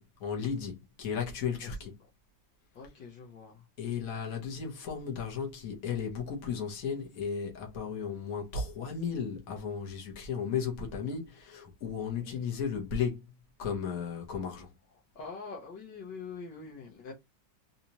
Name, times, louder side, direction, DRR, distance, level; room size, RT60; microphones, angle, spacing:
voice 1, 0.2-2.0 3.8-13.3 13.6-14.7, left 6 dB, 50° left, 1.7 m, -35 dB
voice 2, 2.7-3.7 12.1-12.4 15.1-17.1, left 4 dB, 70° left, 1.6 m, -44 dB
4.1 x 2.7 x 2.9 m
omnidirectional pair, 2.0 m